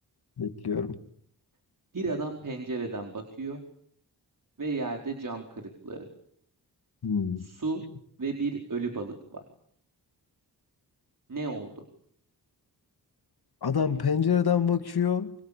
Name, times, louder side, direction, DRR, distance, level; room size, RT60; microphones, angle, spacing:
voice 1, 0.4-1.0 7.0-7.5 13.6-15.3, left 7 dB, 70° left, 8 dB, 2.6 m, -26 dB
voice 2, 1.9-3.6 4.6-6.0 7.4-7.8 8.2-9.4 11.3-11.8, right 3 dB, 55° right, 3 dB, 4.6 m, -33 dB
26.5 x 25.0 x 8.6 m, 0.67 s
cardioid pair, 65°, 40 cm